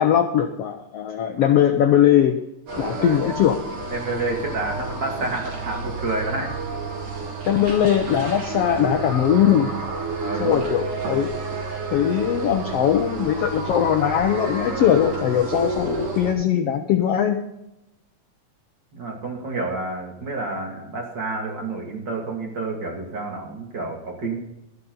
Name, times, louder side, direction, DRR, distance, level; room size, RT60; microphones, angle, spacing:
voice 1, 0.0-2.4 2.8-3.6 7.4-9.7 10.4-11.3 11.9-17.4, left 10 dB, 75° left, 6 dB, 1.5 m, -20 dB
voice 2, 2.7-3.3 3.9-6.6 10.2-10.8 18.9-24.4, right 2 dB, 35° right, 0 dB, 2.7 m, -29 dB
sound 1, 2.7-16.3, right 3 dB, 70° right, 4.3 m, -30 dB
12.5 x 11.5 x 4.0 m, 0.88 s
omnidirectional pair, 3.6 m